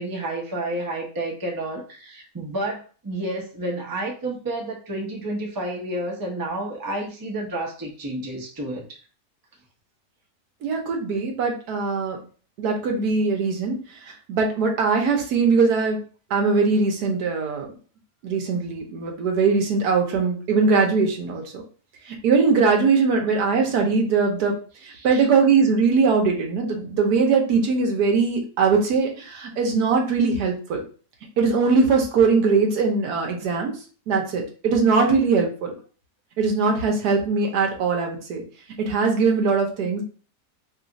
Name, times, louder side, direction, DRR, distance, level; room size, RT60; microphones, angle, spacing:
voice 1, 0.0-9.0 24.9-25.2, right 1 dB, 20° right, -2 dB, 0.5 m, -30 dB
voice 2, 10.6-12.2 12.6-13.7 14.3-16.0 16.3-17.7 18.2-21.6 22.1-24.6 25.0-30.8 31.4-33.8 34.1-35.7 36.4-38.4 38.8-40.0, right 4 dB, 75° right, 2 dB, 1.3 m, -21 dB
3.2 x 2.4 x 3.9 m, 0.39 s
omnidirectional pair, 1.7 m